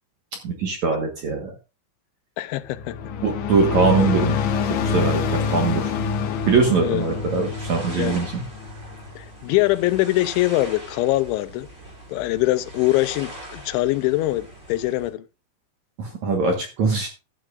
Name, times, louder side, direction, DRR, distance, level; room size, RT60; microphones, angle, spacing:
voice 1, 0.4-1.5 3.2-4.4 4.8-5.9 6.5-8.4 16.0-17.1, right 4 dB, 60° right, 2.0 m, -22 dB
voice 2, 2.4-3.0 6.8-7.0 7.9-8.1 9.2-11.7 12.1-15.2, left 17 dB, 90° left, 3.0 m, -23 dB
sound 1, 2.6-9.3, left 6 dB, 75° left, 2.9 m, -26 dB
sound 2, 5.4-15.1, right 1 dB, 25° right, 6.9 m, -41 dB
15.5 x 10.0 x 2.5 m
omnidirectional pair, 5.2 m